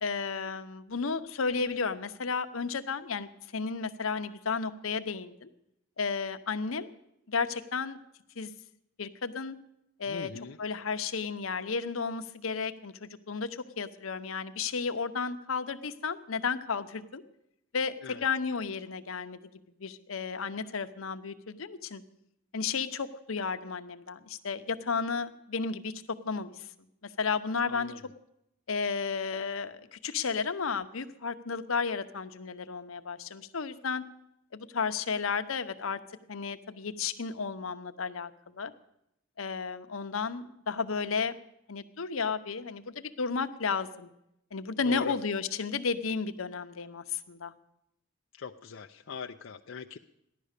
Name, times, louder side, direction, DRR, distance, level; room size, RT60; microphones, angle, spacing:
voice 1, 0.0-5.5 6.0-6.9 7.3-8.0 8.4-8.5 9.0-9.6 10.0-10.3 10.6-17.2 17.7-19.4 19.8-22.0 22.5-25.9 26.2-26.7 27.2-27.9 28.7-34.0 34.5-36.0 36.3-38.3 38.6-38.7 39.4-41.3 41.7-44.1 44.5-47.5, left 5 dB, 90° left, 9 dB, 0.9 m, -33 dB
voice 2, 10.1-10.6 18.0-18.2 27.7-28.0 44.7-45.2 48.3-50.0, left 6 dB, 70° left, 4 dB, 0.5 m, -41 dB
15.5 x 11.0 x 6.6 m, 0.80 s
head